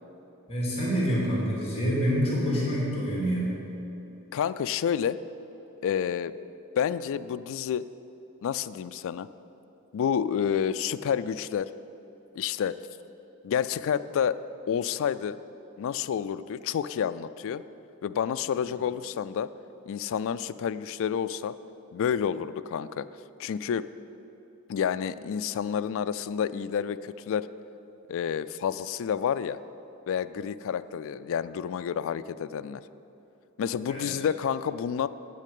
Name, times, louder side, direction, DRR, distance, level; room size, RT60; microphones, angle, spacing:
voice 1, 0.5-3.5 33.9-34.1, equal, 25° left, -5 dB, 2.8 m, -27 dB
voice 2, 4.3-5.2 5.8-6.3 6.8-7.8 8.4-9.3 9.9-11.7 12.4-12.8 13.4-14.4 14.7-15.4 15.8-17.6 18.0-19.5 19.9-21.5 21.9-23.1 23.4-23.9 24.7-27.5 28.1-29.6 30.1-32.8 33.6-35.1, left 8 dB, 60° left, 13 dB, 0.3 m, -29 dB
8.5 x 6.6 x 8.4 m, 3.0 s
head